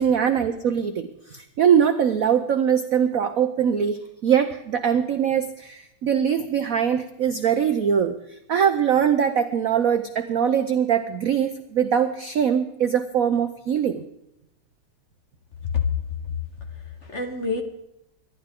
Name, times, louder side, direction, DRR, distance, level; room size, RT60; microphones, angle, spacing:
voice 1, 0.0-8.1 8.5-14.0, right 8 dB, 70° right, 8 dB, 0.8 m, -22 dB
voice 2, 15.6-17.6, left 6 dB, 35° left, 5 dB, 1.5 m, -28 dB
25.0 x 11.5 x 3.7 m, 0.84 s
omnidirectional pair, 2.4 m